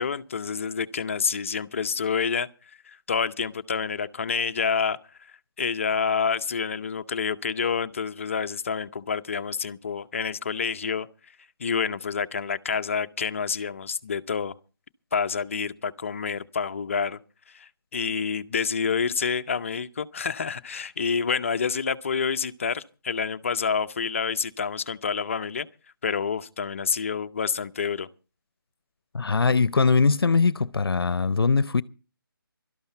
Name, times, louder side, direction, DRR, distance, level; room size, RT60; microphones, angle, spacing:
voice 1, 0.0-2.5 2.9-5.0 5.6-11.1 11.6-14.5 15.1-17.2 17.5-25.7 26.0-28.1, left 6 dB, 35° left, 0.6 m, -28 dB
voice 2, 29.1-31.8, left 4 dB, 75° left, 0.7 m, -21 dB
17.5 x 12.5 x 4.4 m
figure-of-eight pair, 165°, 12 cm